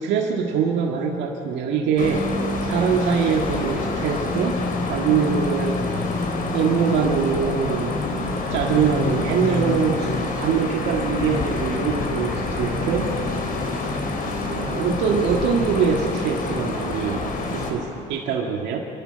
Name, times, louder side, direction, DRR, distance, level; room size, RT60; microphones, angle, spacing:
voice 1, 0.0-2.2 2.6-4.6 4.9-5.9 6.5-7.9 8.5-13.1 14.4-18.8, right 6 dB, 80° right, 0 dB, 1.8 m, -23 dB
sound 1, 2.0-17.7, left 2 dB, 50° left, 4.0 m, -27 dB
27.5 x 12.0 x 8.7 m, 2.9 s
cardioid pair, 95°, 18 cm